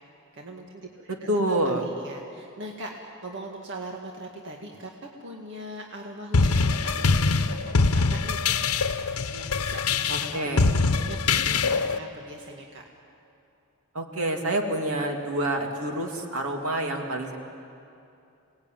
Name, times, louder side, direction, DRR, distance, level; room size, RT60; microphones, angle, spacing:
voice 1, 0.3-4.9 5.2-8.8 9.3-12.8, right 1 dB, 55° right, 0 dB, 2.0 m, -41 dB
voice 2, 1.1-1.8 10.1-10.7 13.9-17.4, right 1 dB, 70° right, 2 dB, 2.6 m, -27 dB
sound 1, 6.3-12.0, left 4 dB, 85° left, 0.9 m, -23 dB
27.5 x 19.5 x 9.2 m, 2.7 s
head